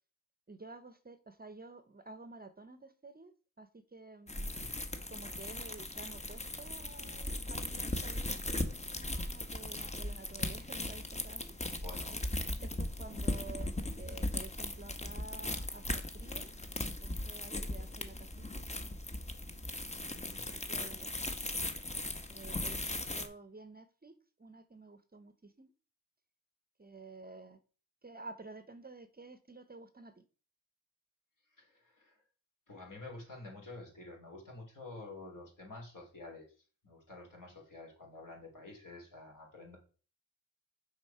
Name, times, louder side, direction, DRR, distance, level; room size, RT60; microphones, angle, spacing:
voice 1, 0.5-3.3 3.6-4.4 5.1-11.6 12.6-13.7 14.0-16.5 16.8-18.6 20.4-21.1 22.3-25.7 26.8-27.6 28.0-30.2, right 3 dB, 25° right, 11 dB, 0.7 m, -51 dB
voice 2, 4.3-4.7 11.7-12.2 17.6-17.9 20.1-20.5 31.5-32.2 32.7-36.5 36.8-39.8, left 2 dB, 60° left, -1 dB, 3.0 m, -50 dB
sound 1, 4.3-23.3, left 1 dB, 20° left, 0.9 m, -38 dB
6.3 x 3.7 x 5.5 m, 0.38 s
cardioid pair, 45°, 36 cm